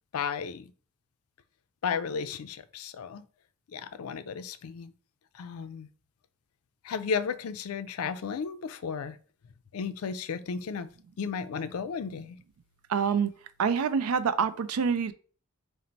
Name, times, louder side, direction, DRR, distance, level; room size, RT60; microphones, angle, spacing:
voice 1, 0.1-0.7 1.8-3.2 3.7-4.9 5.3-5.9 6.8-9.2 9.7-10.9 11.2-12.4, left 6 dB, 85° left, 0.4 m, -34 dB
voice 2, 12.9-13.3 13.6-15.1, right 6 dB, 80° right, 0.4 m, -26 dB
4.4 x 2.1 x 3.9 m
head